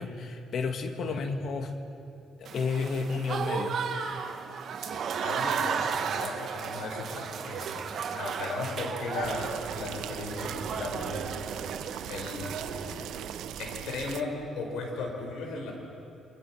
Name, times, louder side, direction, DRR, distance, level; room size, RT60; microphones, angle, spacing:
voice 1, 0.0-1.7 2.4-3.8, left 4 dB, 65° left, 6 dB, 1.9 m, -31 dB
Applause / Crowd, 2.4-13.3, right 6 dB, 65° right, 1.8 m, -34 dB
voice 2, 4.8-7.8 8.1-11.5 11.8-13.0 13.6-15.7, left 3 dB, 85° left, 2 dB, 5.4 m, -37 dB
sound 1, 9.2-14.2, right 10 dB, 85° right, 0.9 m, -39 dB
28.0 x 24.0 x 6.3 m, 2.7 s
cardioid pair, 90°, 0 cm